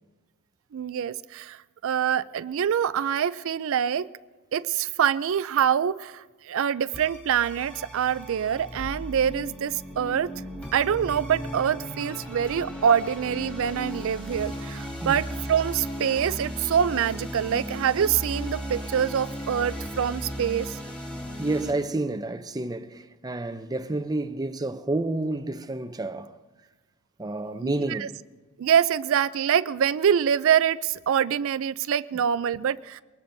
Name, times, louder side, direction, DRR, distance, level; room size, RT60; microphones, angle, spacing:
voice 1, 0.7-4.1 4.5-10.3 10.7-20.8 27.6-28.1 28.6-33.0, right 8 dB, 65° right, 0.4 m, -25 dB
sound 1, 6.9-21.7, equal, 5° left, 3.0 m, -36 dB
voice 2, 21.4-26.4 27.2-28.2, right 2 dB, 20° right, 0.6 m, -30 dB
23.5 x 20.0 x 2.7 m
head